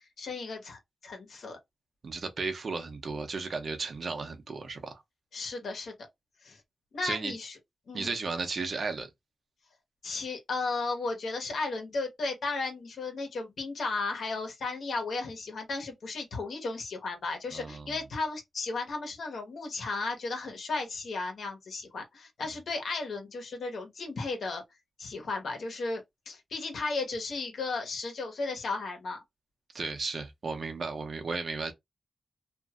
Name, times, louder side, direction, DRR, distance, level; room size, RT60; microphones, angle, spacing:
voice 1, 0.2-1.6 5.3-5.9 6.4-6.6 6.9-7.6 7.9-8.1 10.0-24.6 25.0-26.0 26.3-29.2, left 3 dB, 80° left, 1.1 m, -34 dB
voice 2, 2.0-5.0 7.0-7.4 7.9-9.1 17.5-17.9 29.7-31.7, right 4 dB, 55° right, 0.7 m, -34 dB
2.9 x 2.6 x 2.4 m
wide cardioid pair, 110°, 0 cm